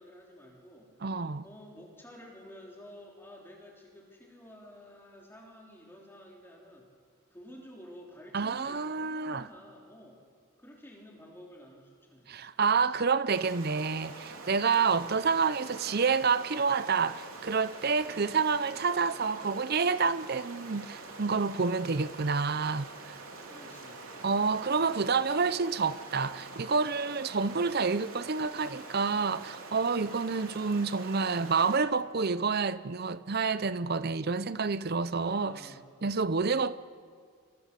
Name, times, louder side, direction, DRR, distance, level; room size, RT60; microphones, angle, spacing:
voice 1, 0.0-0.9 1.4-6.9 7.3-10.2 10.6-12.4 14.8-15.1 23.5-24.1 35.1-35.8, equal, 10° left, 3.4 m, -51 dB
voice 2, 1.0-1.4 8.3-9.5 12.3-23.2 24.2-35.6 36.0-36.8, right 5 dB, 45° right, 0.6 m, -28 dB
Stream, 13.3-31.8, right 3 dB, 75° right, 3.4 m, -45 dB
28.0 x 24.5 x 6.8 m
head